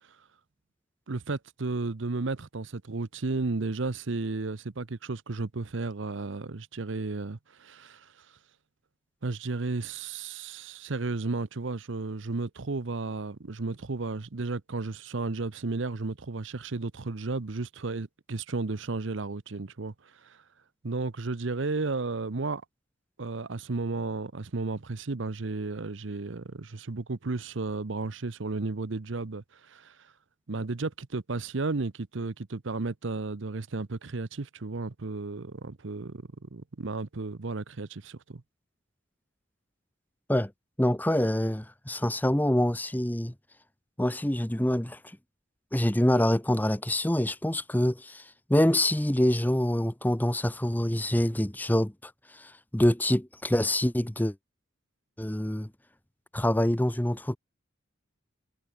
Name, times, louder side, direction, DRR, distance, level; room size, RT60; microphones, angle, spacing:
voice 1, 1.1-8.1 9.2-19.9 20.2-20.4 20.8-22.6 23.2-30.1 30.5-36.2 36.5-38.4, right 3 dB, 65° right, 0.8 m, -33 dB
voice 2, 40.8-43.3 44.0-45.2 45.7-54.3 55.2-55.7 56.3-57.4, left 1 dB, 10° left, 0.9 m, -26 dB
head